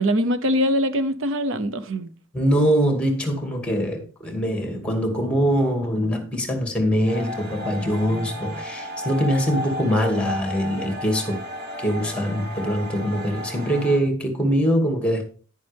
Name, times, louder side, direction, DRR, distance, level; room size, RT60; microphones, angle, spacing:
voice 1, 0.0-2.1, equal, 70° right, 0.8 m, -22 dB
voice 2, 2.3-11.4 11.8-15.3, equal, 5° left, 2.3 m, -23 dB
sound 1, 7.1-14.0, equal, 50° right, 3.6 m, -33 dB
11.0 x 9.6 x 3.4 m
head